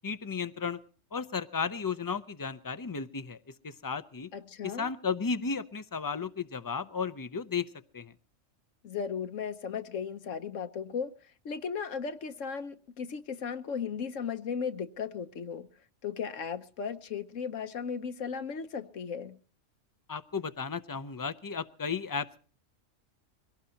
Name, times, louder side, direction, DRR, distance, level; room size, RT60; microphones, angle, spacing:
voice 1, 0.0-0.8 1.1-4.3 4.6-7.7 7.9-8.1 20.1-22.4, left 5 dB, 25° left, 0.4 m, -34 dB
voice 2, 4.3-4.9 8.8-15.7 16.0-19.4, left 6 dB, 75° left, 1.3 m, -36 dB
23.0 x 17.5 x 2.8 m
omnidirectional pair, 1.3 m